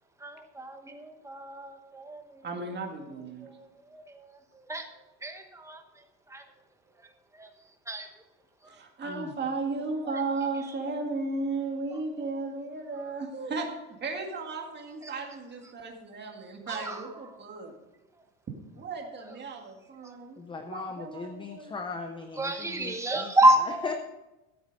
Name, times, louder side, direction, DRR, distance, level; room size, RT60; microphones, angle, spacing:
voice 1, 0.2-2.2 4.7-4.8 5.2-5.8 6.3-6.4 7.9-8.1 16.7-16.8 22.4-23.9, right 1 dB, 5° right, 4 dB, 1.1 m, -27 dB
voice 2, 2.4-3.5 8.7-13.7 14.0-17.7 18.7-21.7, right 3 dB, 20° right, 2 dB, 2.0 m, -35 dB
voice 3, 20.4-23.9, left 4 dB, 10° left, 6 dB, 0.4 m, -39 dB
13.5 x 8.1 x 5.3 m, 1.0 s
cardioid pair, 155°, 47 cm